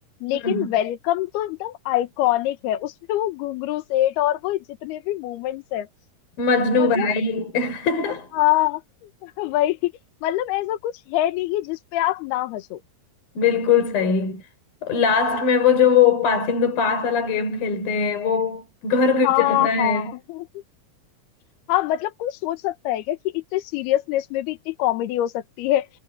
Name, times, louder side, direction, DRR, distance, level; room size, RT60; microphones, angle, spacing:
voice 1, 0.2-5.9 6.8-7.1 8.3-8.8 9.2-9.9 10.2-12.8 19.2-20.5 21.7-25.9, left 14 dB, 80° left, 3.0 m, -24 dB
voice 2, 6.4-8.3 13.4-14.4 14.8-20.1, left 6 dB, 65° left, 6.5 m, -21 dB
omnidirectional pair, 4.6 m